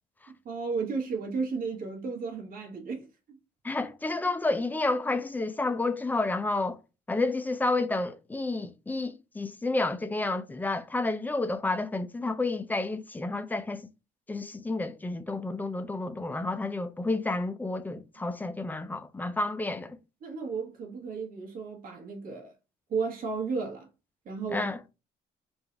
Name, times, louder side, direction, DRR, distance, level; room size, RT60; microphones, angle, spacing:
voice 1, 0.4-3.4 20.2-22.5 22.9-23.9 24.2-24.9, right 4 dB, 55° right, 1.5 m, -34 dB
voice 2, 3.6-6.8 7.1-13.9 14.3-20.0 24.5-24.8, left 2 dB, 10° left, 0.5 m, -30 dB
3.8 x 2.6 x 4.4 m
cardioid pair, 110°, 17 cm